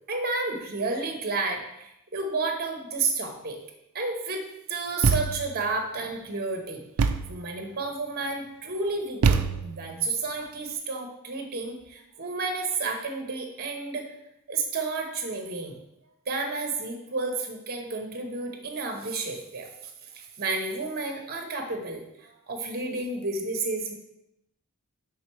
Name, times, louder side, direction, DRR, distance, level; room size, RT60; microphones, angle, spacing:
voice 1, 0.1-3.6 3.9-14.0 14.5-15.8 16.3-19.7 20.0-23.9, right 3 dB, 45° right, 4 dB, 0.9 m, -31 dB
Thump thud, 5.0-5.6 7.0-7.4 9.2-9.9, right 5 dB, 65° right, 0.4 m, -24 dB
5.9 x 3.8 x 4.5 m, 0.84 s
head